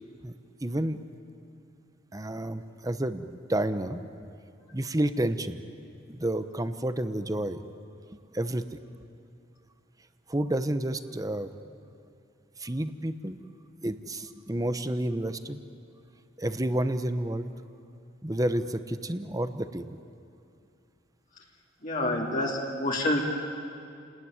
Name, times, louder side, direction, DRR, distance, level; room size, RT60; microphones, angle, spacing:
voice 1, 0.6-1.0 2.1-4.0 4.7-5.6 6.1-7.6 8.3-8.7 10.3-11.5 12.6-13.4 13.8-15.6 16.4-17.5 18.2-20.0, right 1 dB, 20° right, 10 dB, 1.0 m, -30 dB
voice 2, 21.8-23.2, left 1 dB, 45° left, -2 dB, 2.5 m, -27 dB
30.0 x 19.5 x 9.9 m, 2.5 s
head